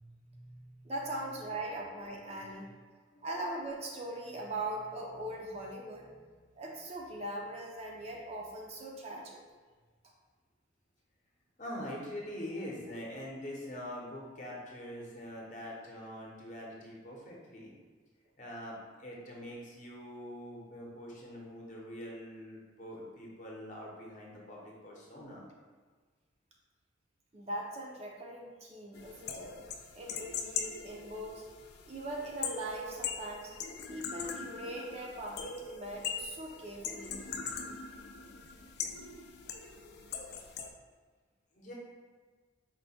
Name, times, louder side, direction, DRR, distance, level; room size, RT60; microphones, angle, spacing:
voice 1, 0.0-2.7 3.2-6.1 6.6-9.4 27.3-29.5 29.9-31.4 31.9-33.5 33.9-37.2, right 1 dB, 35° right, -1 dB, 0.5 m, -41 dB
voice 2, 1.7-3.3 11.6-17.7 18.4-25.4 41.5-41.7, left 1 dB, 40° left, -3 dB, 0.8 m, -44 dB
sound 1, 28.9-40.7, left 6 dB, 55° left, 0.3 m, -41 dB
4.4 x 2.1 x 4.1 m, 1.5 s
head